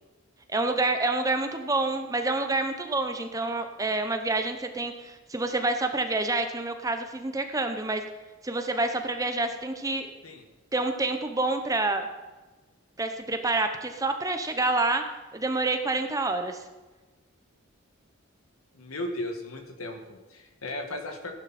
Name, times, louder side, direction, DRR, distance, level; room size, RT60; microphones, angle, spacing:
voice 1, 0.5-8.0 8.4-10.1 10.7-12.1 13.0-15.0 15.3-16.6, right 2 dB, 15° right, 6 dB, 0.9 m, -28 dB
voice 2, 18.7-21.3, left 1 dB, 80° left, 4 dB, 1.9 m, -36 dB
15.5 x 10.5 x 4.3 m, 1.2 s
head